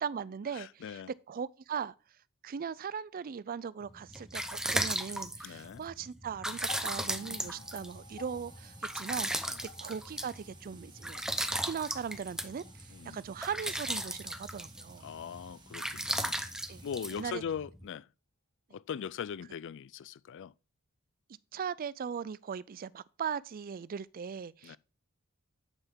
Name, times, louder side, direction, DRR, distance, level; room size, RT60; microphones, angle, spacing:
voice 1, 0.0-1.0 1.3-1.9 2.4-9.5 9.8-11.2 11.6-15.1 16.7-16.8 17.1-17.4 21.5-24.8, right 7 dB, 40° right, 0.4 m, -39 dB
voice 2, 0.5-1.1 5.4-5.8 7.2-7.6 9.5-9.6 12.9-13.2 15.0-16.4 16.8-18.1 18.7-20.5 24.6-24.8, left 7 dB, 55° left, 0.4 m, -41 dB
sound 1, 3.9-17.8, right 1 dB, 5° right, 0.7 m, -37 dB
sound 2, 6.6-15.0 16.0-16.1, left 3 dB, 35° left, 2.2 m, -56 dB
sound 3, 7.4-17.1, right 5 dB, 20° right, 1.3 m, -58 dB
9.8 x 5.7 x 3.6 m
head